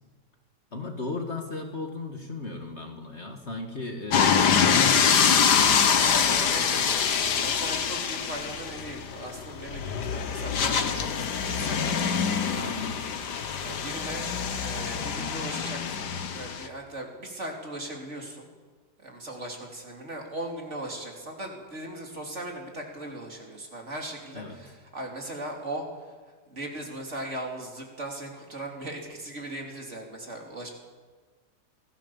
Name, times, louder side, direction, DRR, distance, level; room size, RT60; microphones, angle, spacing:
voice 1, 0.7-6.2 12.6-12.9 24.3-24.6, left 2 dB, 40° left, 3 dB, 2.3 m, -36 dB
sound 1, 4.1-16.7, left 7 dB, 70° left, 1.8 m, -25 dB
voice 2, 6.0-12.3 12.5-12.9 13.6-18.5 19.0-26.1 26.5-30.7, right 1 dB, 40° right, 1 dB, 3.5 m, -38 dB
25.0 x 16.0 x 7.2 m, 1.4 s
omnidirectional pair, 1.8 m